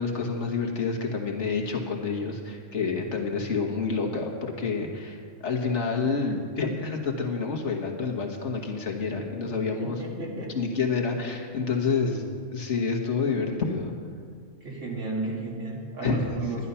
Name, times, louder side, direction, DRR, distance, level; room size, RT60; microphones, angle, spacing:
voice 1, 0.0-10.0 10.3-12.2 12.5-13.9 16.0-16.4, left 4 dB, 65° left, 1 dB, 1.7 m, -28 dB
voice 2, 9.8-10.5 14.6-16.7, right 3 dB, 70° right, -2 dB, 2.5 m, -33 dB
11.5 x 11.0 x 5.6 m, 2.1 s
omnidirectional pair, 1.3 m